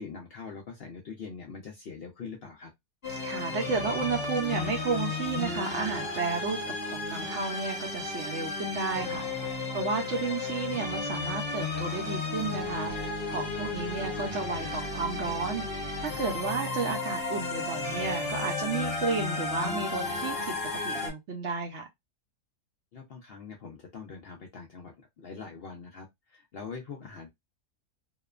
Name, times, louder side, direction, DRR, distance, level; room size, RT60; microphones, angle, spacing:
voice 1, 0.0-2.7 22.9-27.3, left 5 dB, 65° left, 0.5 m, -43 dB
sound 1, 3.0-21.1, left 3 dB, 40° left, 1.3 m, -33 dB
voice 2, 3.2-9.3 9.7-15.7 16.0-20.5 20.8-21.9, right 4 dB, 60° right, 0.8 m, -32 dB
2.8 x 2.1 x 2.4 m
omnidirectional pair, 1.7 m